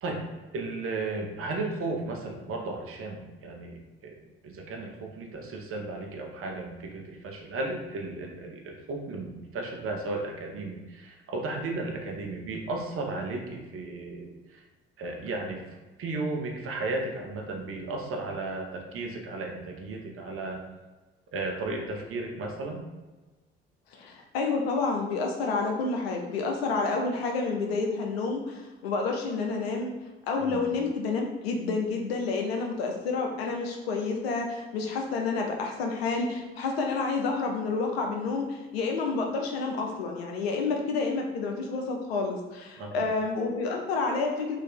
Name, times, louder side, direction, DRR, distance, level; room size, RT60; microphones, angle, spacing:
voice 1, 0.5-4.1 4.4-14.6 15.0-15.6 16.0-20.6 21.3-22.8 30.4-30.7 42.8-43.1, right 2 dB, 45° right, 1 dB, 0.9 m, -34 dB
voice 2, 23.9-29.9 30.3-44.6, left 4 dB, 80° left, 2 dB, 0.7 m, -29 dB
3.3 x 2.7 x 4.0 m, 1.2 s
figure-of-eight pair, 50°, 30 cm